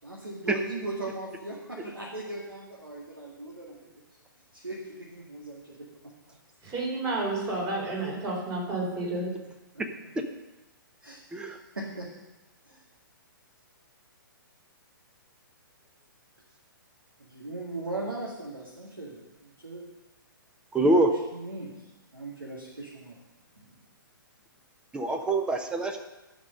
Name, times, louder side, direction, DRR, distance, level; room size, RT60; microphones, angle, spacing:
voice 1, 0.0-3.8 4.5-5.9 8.9-9.0 9.7-9.8 11.0-12.1 12.7-12.8 17.2-19.9 21.3-21.8 22.1-23.2, right 2 dB, 90° right, -4 dB, 2.2 m, -38 dB
voice 2, 6.6-9.3, right 2 dB, 25° right, -4 dB, 4.5 m, -30 dB
voice 3, 20.7-21.1 24.9-26.0, right 2 dB, 10° right, 5 dB, 0.9 m, -24 dB
13.0 x 5.2 x 6.6 m, 1.1 s
figure-of-eight pair, 125°, 12 cm